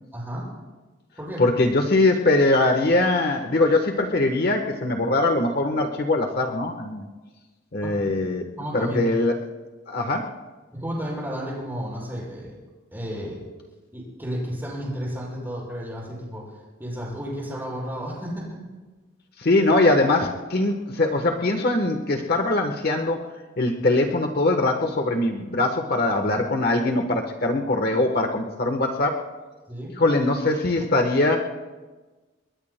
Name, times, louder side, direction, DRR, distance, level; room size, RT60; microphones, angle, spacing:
voice 1, 0.1-0.5 1.2-1.4 7.8-8.2 8.6-9.2 10.7-12.5 12.9-13.4 13.9-16.5 16.8-18.6 29.7-30.0, equal, 10° right, -6 dB, 6.6 m, -32 dB
voice 2, 1.4-7.0 7.7-8.5 8.7-9.3 9.9-10.3 19.4-23.2 23.6-29.2 30.0-31.4, left 2 dB, 50° left, 4 dB, 1.1 m, -22 dB
29.0 x 22.0 x 2.2 m, 1.3 s
head